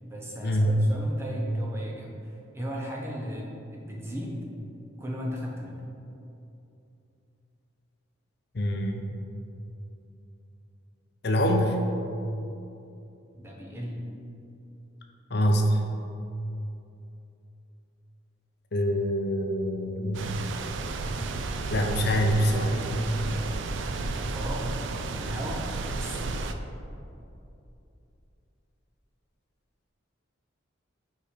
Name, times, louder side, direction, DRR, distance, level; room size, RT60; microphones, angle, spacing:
voice 1, 0.0-4.4 5.0-5.8 13.3-14.0 22.5-23.6 24.1-24.7 25.1-25.7 26.0-26.3, equal, 10° right, -3 dB, 0.8 m, -36 dB
voice 2, 8.5-9.1 11.2-11.8 15.3-15.8 18.7-20.4 21.7-22.7, equal, 55° left, 3 dB, 0.6 m, -25 dB
sound 1, 20.1-26.5, right 3 dB, 65° right, 0.4 m, -32 dB
5.4 x 4.8 x 5.0 m, 2.8 s
head